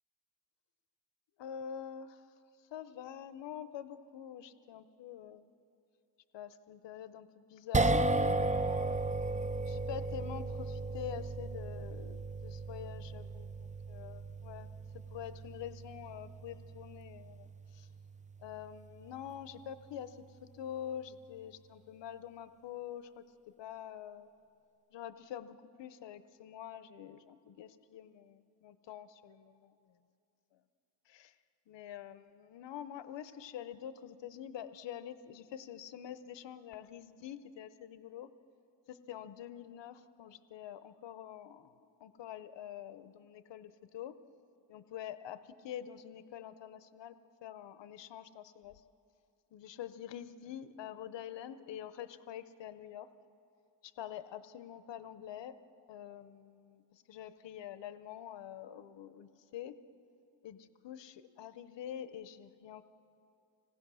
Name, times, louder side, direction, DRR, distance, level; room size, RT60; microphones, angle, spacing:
voice 1, 1.4-2.2 2.7-5.5 6.3-9.0 9.7-14.7 14.9-17.5 17.7-17.9 18.4-20.2 20.5-23.2 23.6-24.3 24.9-29.7 31.1-31.3 31.7-38.3 38.9-44.1 44.7-47.1 47.4-48.7 49.5-53.1 53.8-55.5 55.9-59.7 60.4-62.9, left 10 dB, 90° left, 13 dB, 0.8 m, -46 dB
sound 1, 7.7-20.1, right 2 dB, 15° right, 0.6 m, -36 dB
26.5 x 18.5 x 6.2 m, 2.5 s
cardioid pair, 90°, 42 cm